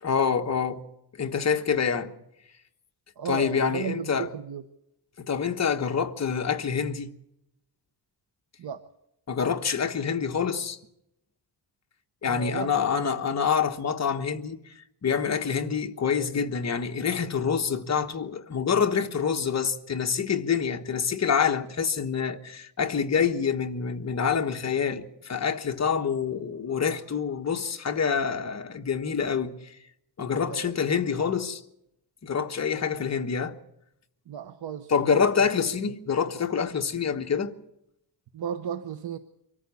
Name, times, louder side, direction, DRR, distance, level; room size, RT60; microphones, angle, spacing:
voice 1, 0.0-0.8 1.2-2.1 3.3-4.3 5.2-7.1 9.3-10.8 12.2-14.6 15.0-29.5 30.2-31.6 32.2-33.6 34.9-37.5, left 6 dB, 40° left, 1.3 m, -26 dB
voice 2, 3.2-4.6 8.6-8.8 12.2-12.9 13.2-13.3 30.3-30.7 34.3-35.5 38.3-39.2, right 7 dB, 65° right, 1.0 m, -35 dB
24.0 x 14.0 x 8.4 m
wide cardioid pair, 165°, 42 cm